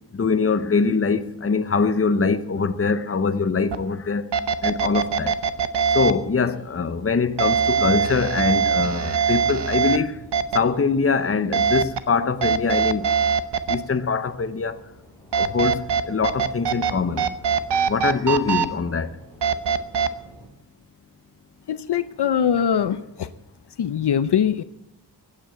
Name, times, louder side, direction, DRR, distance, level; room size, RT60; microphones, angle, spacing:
voice 1, 0.1-4.3 4.6-5.4 5.9-10.2 10.5-13.1 13.7-14.8 15.3-17.3 17.9-19.1, left 4 dB, 35° left, 0.8 m, -23 dB
sound 1, 3.7-3.8 4.3-6.1 7.4-10.0 10.3-10.6 11.5-12.0 12.4-13.8 15.3-16.9 17.2-18.7 19.4-20.1, right 6 dB, 80° right, 0.9 m, -21 dB
sound 2, 6.2-20.5, equal, 5° left, 5.6 m, -49 dB
voice 2, 21.7-23.3 23.8-24.6, left 8 dB, 70° left, 0.7 m, -22 dB
15.0 x 9.1 x 7.8 m
wide cardioid pair, 115°, 41 cm